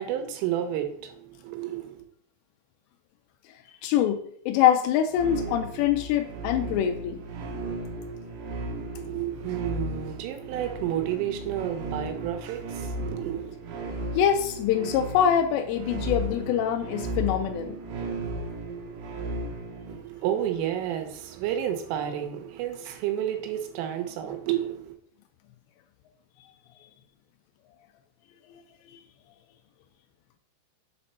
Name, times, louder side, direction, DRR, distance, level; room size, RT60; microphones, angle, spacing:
voice 1, 0.0-2.1 8.9-13.6 19.9-25.0, right 11 dB, 85° right, 3.5 m, -31 dB
voice 2, 3.8-7.2 14.1-17.8, left 9 dB, 90° left, 2.5 m, -24 dB
sound 1, 5.1-20.0, right 1 dB, 70° right, 3.3 m, -35 dB
7.4 x 4.2 x 5.6 m
omnidirectional pair, 5.6 m